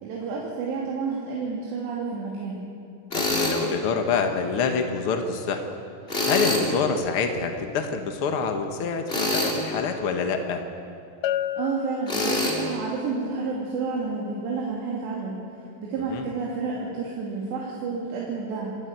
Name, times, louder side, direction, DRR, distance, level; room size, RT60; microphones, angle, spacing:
voice 1, 0.0-2.6 11.6-15.4 15.8-18.9, right 4 dB, 80° right, -4 dB, 4.7 m, -30 dB
voice 2, 3.1-5.6 6.3-10.6 16.1-16.2, left 5 dB, 70° left, 5 dB, 1.3 m, -26 dB
Tools, 3.1-3.6 6.1-6.7 9.1-9.6 12.1-12.6, left 1 dB, 15° left, 3.3 m, -25 dB
Bell, 11.2-12.9, left 11 dB, 90° left, 1.9 m, -31 dB
27.0 x 14.5 x 9.4 m, 2.4 s
omnidirectional pair, 4.8 m